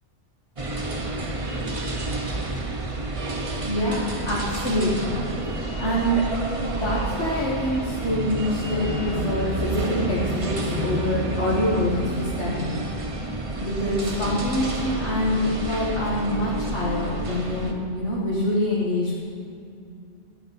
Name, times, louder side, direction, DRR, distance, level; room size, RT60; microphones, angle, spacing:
sound 1, 0.6-17.7, right 2 dB, 30° right, 1.1 m, -29 dB
voice 1, 3.7-5.2 5.8-6.3 6.7-12.9 13.6-19.2, left 1 dB, 75° left, -7 dB, 2.4 m, -25 dB
14.5 x 5.8 x 9.7 m, 2.5 s
omnidirectional pair, 1.2 m